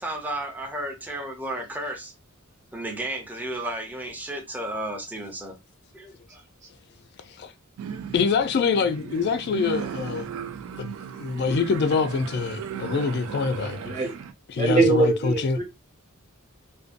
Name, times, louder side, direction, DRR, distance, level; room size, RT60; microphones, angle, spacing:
voice 1, 0.0-2.1 2.7-5.6 5.9-6.4, right 1 dB, 10° right, 0.5 m, -33 dB
sound 1, 7.8-14.3, right 7 dB, 75° right, 0.3 m, -36 dB
voice 2, 8.1-10.3 10.8-10.9 11.2-14.0 14.5-15.6, left 5 dB, 50° left, 0.3 m, -25 dB
voice 3, 14.6-15.6, right 3 dB, 35° right, 0.8 m, -22 dB
2.5 x 2.2 x 2.4 m
head